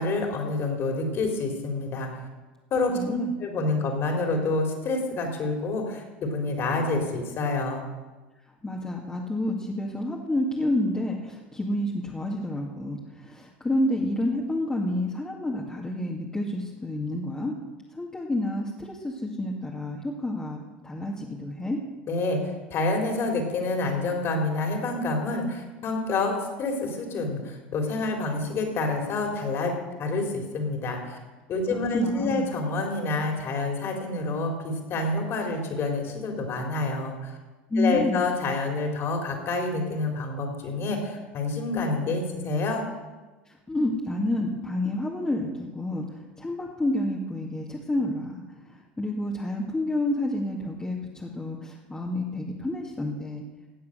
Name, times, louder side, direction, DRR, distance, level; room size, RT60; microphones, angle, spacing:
voice 1, 0.0-2.1 2.7-7.9 22.1-22.4 22.7-29.7 30.0-31.2 31.5-37.3 37.8-42.8, left 2 dB, 45° left, 2 dB, 3.9 m, -28 dB
voice 2, 2.9-3.3 8.6-17.6 17.9-21.8 31.7-32.5 37.7-38.2 43.7-48.4 48.7-53.4, left 1 dB, 15° left, -2 dB, 2.2 m, -29 dB
16.5 x 8.4 x 6.7 m, 1.2 s
hypercardioid pair, 85°, 6 cm